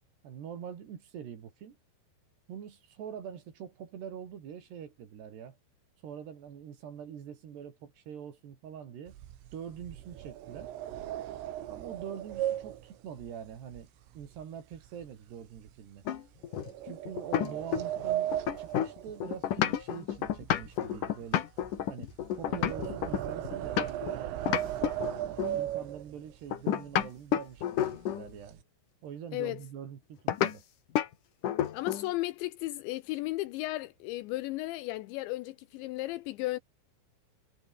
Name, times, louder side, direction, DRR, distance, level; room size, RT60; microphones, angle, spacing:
voice 1, 0.2-1.8 2.5-5.6 6.0-9.2 9.5-10.7 11.7-13.9 14.1-16.1 16.8-18.3 18.6-21.5 21.9-22.1 22.4-24.3 24.8-28.6 29.0-30.6, right 8 dB, 60° right, 4.8 m, -44 dB
sound 1, 9.1-14.4 14.7-15.1 15.6-15.7 16.5-19.8 20.1-26.4 27.0-27.1 27.4-27.6 28.0-28.6, right 13 dB, 85° right, 4.5 m, -37 dB
sound 2, 16.1-18.0 18.3-24.1 24.5-25.6 26.5-28.3 30.3-30.5 31.0-31.1 31.4-32.1, left 10 dB, 60° left, 2.5 m, -30 dB
voice 2, 31.7-36.6, left 18 dB, 85° left, 2.7 m, -35 dB
omnidirectional pair, 5.7 m